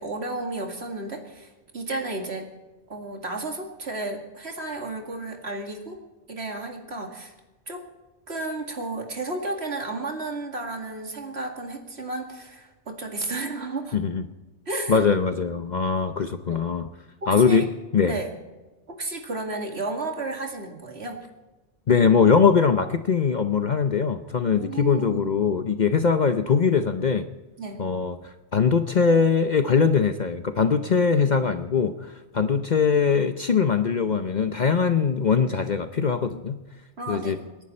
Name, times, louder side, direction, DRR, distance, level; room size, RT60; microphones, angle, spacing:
voice 1, 0.0-2.5 2.9-6.0 6.3-7.3 7.7-7.9 8.3-14.0 14.7-15.0 15.3-15.4 16.5-16.7 17.2-17.7 18.0-18.3 18.9-21.2 24.5-25.3 27.6-27.9 37.0-37.6, right 2 dB, 60° right, 2 dB, 2.5 m, -33 dB
voice 2, 13.9-14.2 14.9-16.9 17.3-17.7 17.9-18.2 21.9-27.3 27.8-36.6 37.1-37.4, left 5 dB, 45° left, 8 dB, 0.7 m, -21 dB
28.0 x 11.0 x 4.3 m, 1.2 s
omnidirectional pair, 1.2 m